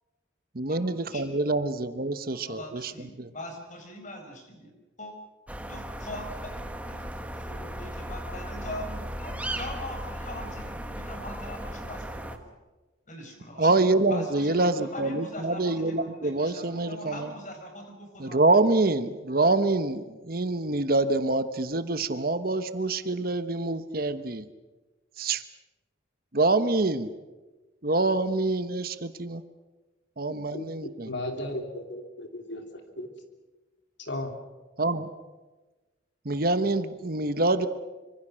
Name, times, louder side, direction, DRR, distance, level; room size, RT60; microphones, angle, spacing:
voice 1, 0.5-2.9 3.2-3.3 13.6-17.3 18.2-24.4 25.2-25.4 26.3-27.1 27.8-29.4 30.2-31.1 34.8-35.0 36.2-37.7, right 2 dB, 50° right, 11 dB, 1.1 m, -26 dB
voice 2, 2.5-4.7 5.0-5.1 5.6-7.1 7.3-12.4 13.1-13.8 14.1-18.5, left 1 dB, 40° left, 4 dB, 5.3 m, -41 dB
sound 1, 5.5-12.4, right 1 dB, 5° right, 1.4 m, -36 dB
voice 3, 30.3-33.1 34.0-34.3, left 1 dB, 65° left, 5 dB, 3.0 m, -36 dB
25.5 x 25.5 x 6.4 m, 1.2 s
head